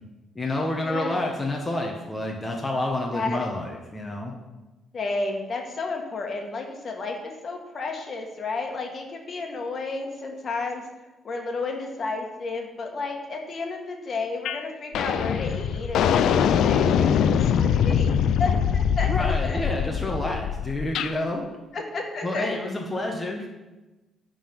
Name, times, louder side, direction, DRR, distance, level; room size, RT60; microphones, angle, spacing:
voice 1, 0.3-4.3 19.0-21.5 22.2-23.5, left 1 dB, 20° left, 0 dB, 1.1 m, -29 dB
voice 2, 0.8-1.3 3.1-3.4 4.9-10.8 11.2-18.1 18.4-19.1 19.4-19.6 21.7-22.5, left 3 dB, 45° left, 2 dB, 1.5 m, -32 dB
Metal Cling Clang Bang, 14.4-14.6 14.9-21.1, left 8 dB, 80° left, 0.4 m, -23 dB
10.0 x 3.9 x 5.9 m, 1.1 s
cardioid pair, 90°, 0 cm